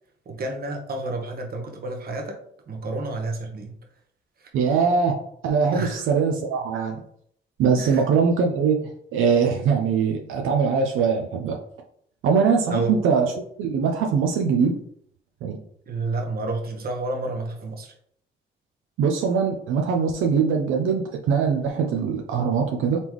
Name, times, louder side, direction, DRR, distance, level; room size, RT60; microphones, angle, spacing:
voice 1, 0.3-2.4 2.7-3.7 5.7-6.0 7.7-8.1 12.7-12.9 15.9-17.9, right 2 dB, 50° right, 2 dB, 1.1 m, -30 dB
voice 2, 4.5-7.0 7.6-11.6 12.2-13.3 13.6-14.8 15.4-15.6 19.0-23.0, right 6 dB, 85° right, 2 dB, 0.6 m, -22 dB
4.1 x 3.6 x 3.0 m, 0.66 s
cardioid pair, 90°, 20 cm